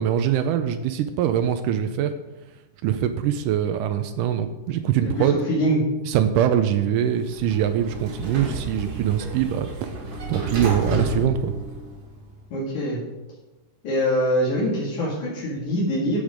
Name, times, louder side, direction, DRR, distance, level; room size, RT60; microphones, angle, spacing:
voice 1, 0.0-2.1 2.8-5.3 6.1-9.7 10.3-11.5, right 10 dB, 85° right, 8 dB, 2.2 m, -23 dB
voice 2, 5.0-5.8 12.5-13.0 13.8-16.2, equal, 70° left, -6 dB, 3.4 m, -24 dB
Sliding door, 7.1-12.3, right 1 dB, 45° right, 2.1 m, -32 dB
15.5 x 5.2 x 5.1 m, 1.1 s
omnidirectional pair, 3.7 m